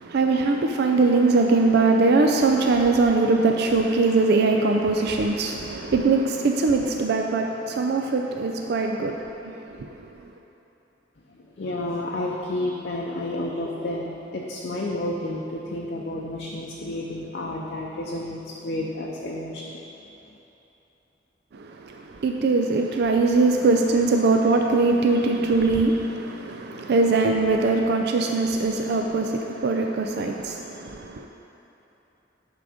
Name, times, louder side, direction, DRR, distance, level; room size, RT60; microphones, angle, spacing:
voice 1, 0.0-9.2 9.8-9.9 21.5-31.3, right 3 dB, 60° right, 3 dB, 0.4 m, -21 dB
voice 2, 11.4-19.8, left 1 dB, 55° left, -2 dB, 0.6 m, -31 dB
10.0 x 3.8 x 5.0 m, 3.0 s
head